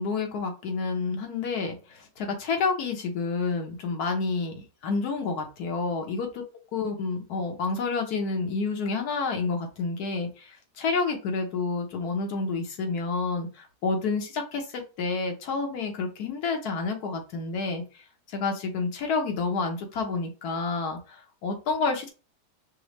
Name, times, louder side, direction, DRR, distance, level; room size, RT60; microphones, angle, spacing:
voice 1, 0.0-6.4 6.7-17.8 18.3-22.1, left 4 dB, 70° left, 3 dB, 1.4 m, -29 dB
5.3 x 2.2 x 3.0 m, 0.33 s
omnidirectional pair, 1.7 m